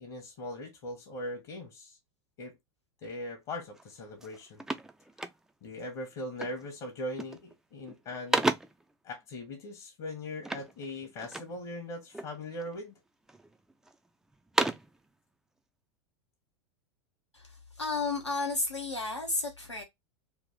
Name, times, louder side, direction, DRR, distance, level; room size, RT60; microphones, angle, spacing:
voice 1, 0.0-2.0 2.4-2.6 3.0-4.6 5.6-8.5 9.0-12.9, left 1 dB, 45° left, 1.2 m, -40 dB
sound 1, 3.7-3.9 4.2-5.8 6.4-6.7 7.0-7.5 7.9-8.9 10.4-11.6 12.1-12.8 13.3-13.9 14.3-15.0, right 2 dB, 5° right, 0.3 m, -33 dB
voice 2, 17.3-19.8, left 3 dB, 90° left, 1.3 m, -32 dB
3.4 x 2.6 x 3.5 m
figure-of-eight pair, 90°, 14 cm